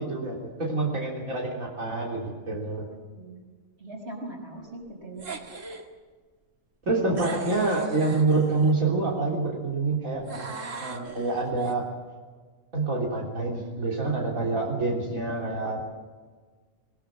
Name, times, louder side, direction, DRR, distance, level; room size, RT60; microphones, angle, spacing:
voice 1, 0.0-2.8 6.9-11.9 12.7-15.8, right 3 dB, 85° right, -2 dB, 3.9 m, -27 dB
voice 2, 2.9-3.4 3.8-5.3, right 2 dB, 50° right, 1 dB, 5.6 m, -41 dB
sound 1, 5.2-5.9 7.2-8.8 10.3-11.7, right 4 dB, 70° right, 2.3 m, -39 dB
21.5 x 21.0 x 7.6 m, 1.5 s
omnidirectional pair, 1.4 m